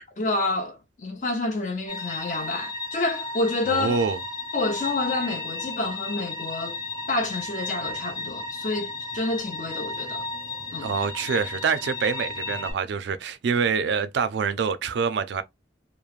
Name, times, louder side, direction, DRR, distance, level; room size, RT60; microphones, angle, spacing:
voice 1, 0.2-4.0 4.5-6.8 7.1-10.3 10.7-10.9, left 2 dB, 45° left, 0.8 m, -28 dB
sound 1, 1.9-12.7, left 3 dB, 20° left, 1.0 m, -34 dB
voice 2, 3.7-4.2 10.8-15.4, right 6 dB, 70° right, 0.3 m, -26 dB
3.1 x 2.1 x 2.4 m
head